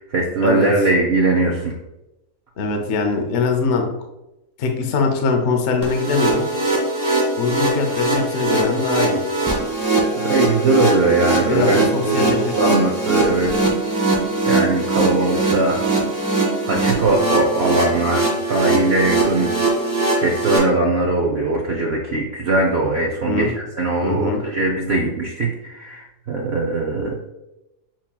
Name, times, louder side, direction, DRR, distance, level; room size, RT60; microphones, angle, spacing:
voice 1, 0.0-1.7 10.2-13.5 14.5-15.8 16.7-19.5 20.2-27.2, right 2 dB, 70° right, 0 dB, 0.6 m, -20 dB
voice 2, 2.6-3.9 4.6-6.4 7.3-9.2 11.5-12.6 23.3-23.5 24.0-24.4, left 4 dB, 60° left, 3 dB, 0.8 m, -22 dB
sound 1, 5.8-20.6, right 2 dB, 10° right, 1.3 m, -21 dB
7.3 x 2.8 x 2.2 m, 0.93 s
omnidirectional pair, 1.8 m